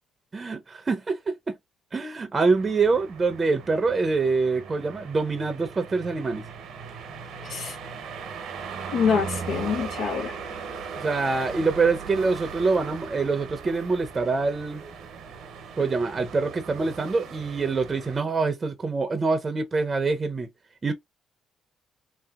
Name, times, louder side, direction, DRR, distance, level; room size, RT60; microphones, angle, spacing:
voice 1, 0.3-1.6 1.9-6.4 11.0-14.8 15.8-20.5 20.8-20.9, right 4 dB, 30° right, 0.5 m, -25 dB
sound 1, 2.5-18.2, right 6 dB, 80° right, 0.7 m, -38 dB
voice 2, 7.4-7.8 8.9-10.4, left 6 dB, 85° left, 0.7 m, -26 dB
3.2 x 2.7 x 2.3 m
cardioid pair, 90°, 0 cm